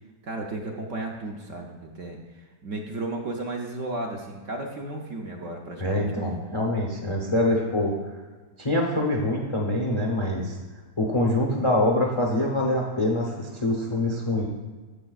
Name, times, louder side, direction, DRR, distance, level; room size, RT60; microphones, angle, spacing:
voice 1, 0.2-6.4, right 2 dB, 60° right, 1 dB, 0.9 m, -34 dB
voice 2, 5.8-7.9 8.6-10.6 11.0-14.5, left 1 dB, 35° left, 0 dB, 0.5 m, -24 dB
9.8 x 7.5 x 2.4 m, 1.4 s
omnidirectional pair, 1.8 m